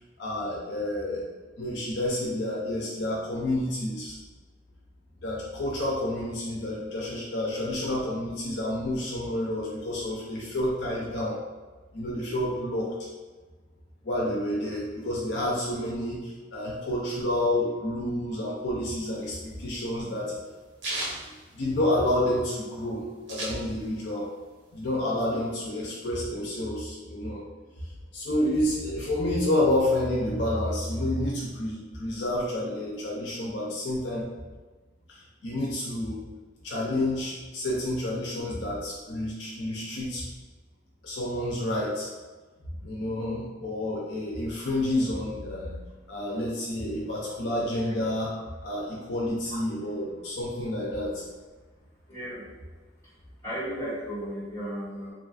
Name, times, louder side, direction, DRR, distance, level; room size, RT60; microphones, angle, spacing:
voice 1, 0.2-1.3 1.6-4.2 5.2-11.4 11.9-12.9 14.0-20.3 21.2-24.3 24.7-27.4 27.8-27.9 28.1-34.3 35.1-36.2 36.6-40.3 41.0-42.1 42.8-45.8 46.1-48.3 48.6-51.2, left 1 dB, 70° left, -4 dB, 0.5 m, -29 dB
sound 1, 19.1-22.2 22.6-22.7 22.8-24.1 24.5-25.6, right 1 dB, 80° right, 0.8 m, -36 dB
voice 2, 52.1-52.4 53.4-55.1, equal, 15° left, -11 dB, 1.3 m, -34 dB
3.0 x 2.4 x 2.4 m, 1.3 s
head